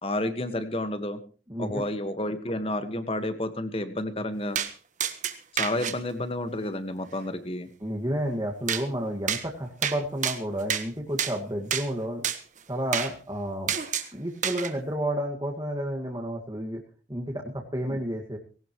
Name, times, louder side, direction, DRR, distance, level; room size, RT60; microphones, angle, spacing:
voice 1, 0.0-1.2 1.6-4.6 5.5-7.7, left 1 dB, 30° left, 9 dB, 1.6 m, -30 dB
voice 2, 1.5-1.8 7.8-12.2 12.7-13.7 14.1-16.8 17.1-18.4, equal, 20° right, 0 dB, 2.0 m, -31 dB
sound 1, 4.6-4.7 5.0-6.0 8.7-8.8 9.3-9.4 9.8-10.0 10.2-10.9 11.2-11.3 11.7-11.9 12.2-12.4 12.9-13.1 13.7-14.1 14.4-14.7, right 8 dB, 40° right, 1.4 m, -28 dB
19.0 x 18.0 x 3.1 m, 0.37 s
head